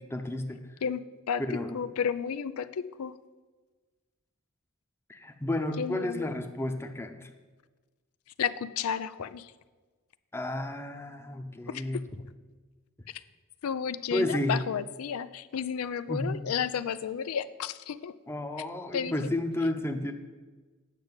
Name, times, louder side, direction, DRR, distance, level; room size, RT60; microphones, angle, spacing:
voice 1, 0.1-0.6 1.4-1.8 5.1-7.3 10.3-12.0 14.1-14.6 16.1-16.5 18.3-20.1, left 1 dB, 10° left, 5 dB, 0.8 m, -32 dB
voice 2, 0.8-1.4 1.7-3.2 5.8-6.3 8.4-9.5 11.7-11.8 13.1-13.2 13.6-18.1 18.9-19.1, left 7 dB, 85° left, 14 dB, 0.4 m, -32 dB
9.0 x 6.5 x 8.0 m, 1.3 s
head